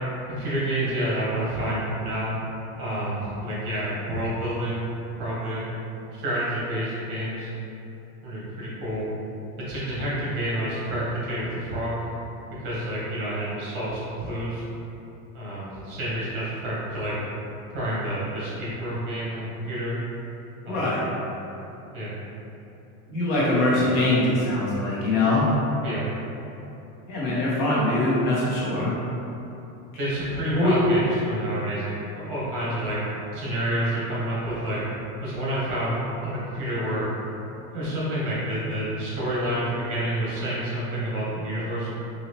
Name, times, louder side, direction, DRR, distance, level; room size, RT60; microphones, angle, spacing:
voice 1, 0.3-2.3 2.8-4.9 5.2-5.6 6.1-7.5 8.2-9.1 9.6-11.9 12.5-14.6 15.3-17.2 17.7-19.9 20.6-21.0 21.9-22.1 25.8-26.0 30.0-33.0 33.3-34.8 35.2-37.0 37.7-41.9, right 1 dB, 40° right, -7 dB, 1.3 m, -29 dB
voice 2, 20.6-21.1 23.1-25.5 27.1-28.9 30.5-30.8, left 2 dB, 60° left, -8 dB, 1.4 m, -23 dB
4.1 x 2.8 x 3.0 m, 2.9 s
supercardioid pair, 160°, 43 cm